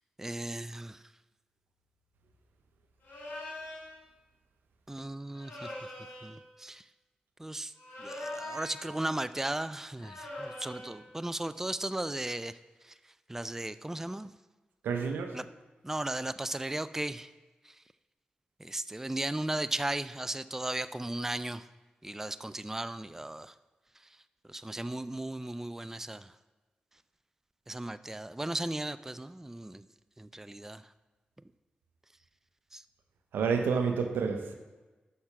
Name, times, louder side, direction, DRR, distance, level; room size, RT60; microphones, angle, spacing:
voice 1, 0.2-1.0 4.9-5.7 6.2-6.8 7.4-7.7 8.0-12.5 13.3-14.3 15.3-15.4 15.8-17.3 18.6-21.6 22.0-23.5 24.5-26.3 27.7-29.8 30.2-30.8 32.7-32.8, right 1 dB, 10° right, 14 dB, 0.3 m, -36 dB
sound 1, 3.0-3.9 5.3-6.4 7.8-9.0 10.0-11.0, left 1 dB, 75° left, 2.8 m, -42 dB
voice 2, 14.8-15.4 33.3-34.5, right 5 dB, 90° right, 6 dB, 0.7 m, -29 dB
6.5 x 5.8 x 5.8 m, 1.2 s
supercardioid pair, 40°, 3 cm